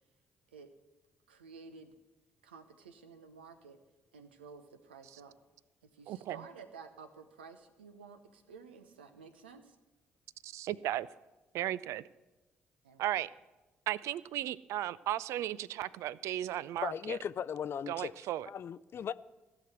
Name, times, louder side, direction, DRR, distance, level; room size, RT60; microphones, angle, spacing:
voice 1, 1.3-2.0 2.4-3.8 4.1-5.3 5.9-9.8 12.8-13.1, right 5 dB, 85° right, 0.8 m, -52 dB
voice 2, 6.1-6.4 10.4-11.1 11.5-12.0 13.0-13.3 13.9-17.2 17.9-18.5, right 13 dB, 65° right, 0.4 m, -35 dB
voice 3, 16.8-18.1 18.5-19.1, left 8 dB, 45° left, 0.4 m, -37 dB
15.5 x 6.1 x 7.9 m
hypercardioid pair, 45°, 5 cm